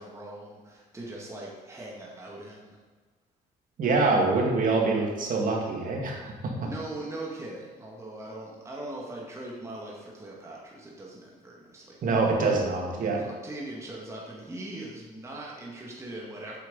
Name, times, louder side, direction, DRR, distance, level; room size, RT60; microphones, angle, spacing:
voice 1, 0.0-2.8 6.6-12.0 12.8-16.6, right 1 dB, 15° right, -3 dB, 1.9 m, -40 dB
voice 2, 3.8-6.3 12.0-13.2, right 3 dB, 50° right, 0 dB, 2.3 m, -25 dB
8.3 x 6.4 x 5.5 m, 1.3 s
cardioid pair, 110°, 17 cm